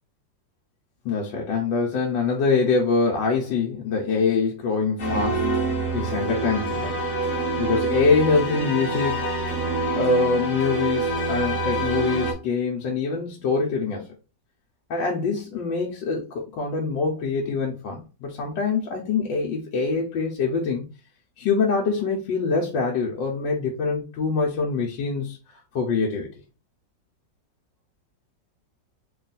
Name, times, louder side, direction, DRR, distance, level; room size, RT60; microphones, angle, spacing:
voice 1, 1.0-5.5 5.9-6.9 7.6-9.2 9.9-14.1 14.9-20.9 21.4-25.4 25.7-26.3, left 4 dB, 90° left, -1 dB, 1.5 m, -24 dB
sound 1, 5.0-12.3, right 2 dB, 45° left, 0.9 m, -26 dB
3.6 x 2.4 x 4.0 m, 0.31 s
omnidirectional pair, 2.0 m